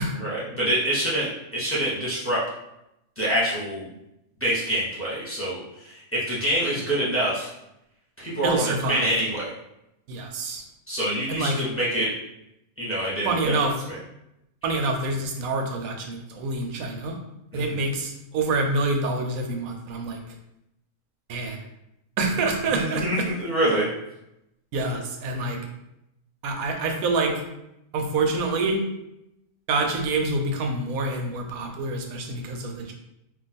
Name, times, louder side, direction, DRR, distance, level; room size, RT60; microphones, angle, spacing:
voice 1, 0.2-2.4 3.2-3.9 4.4-7.5 8.2-9.5 10.9-12.1 12.8-13.5 13.9-14.0 17.5-17.8 22.7-23.9, right 1 dB, 10° left, -8 dB, 0.8 m, -26 dB
voice 2, 8.4-9.1 10.1-10.6 11.3-11.6 13.2-13.7 14.6-17.2 17.5-20.2 21.3-21.6 22.2-23.3 24.7-25.6 26.4-27.4 27.9-28.8 29.7-32.9, right 3 dB, 80° right, 3 dB, 1.1 m, -26 dB
2.5 x 2.3 x 4.0 m, 0.85 s
omnidirectional pair, 1.5 m